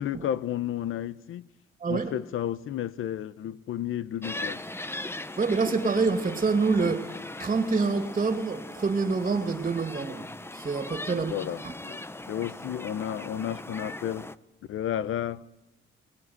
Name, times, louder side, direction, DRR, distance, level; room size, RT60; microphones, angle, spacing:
voice 1, 0.0-1.5 1.9-4.6 11.1-12.0 12.3-14.3 14.7-15.4, left 10 dB, 85° left, 1.0 m, -32 dB
sound 1, 4.2-14.4, left 2 dB, 10° left, 0.9 m, -39 dB
voice 2, 5.4-7.1 7.4-10.2 10.5-11.4 11.6-11.7, right 4 dB, 35° right, 2.7 m, -26 dB
24.5 x 20.0 x 9.7 m
cardioid pair, 110°, 21 cm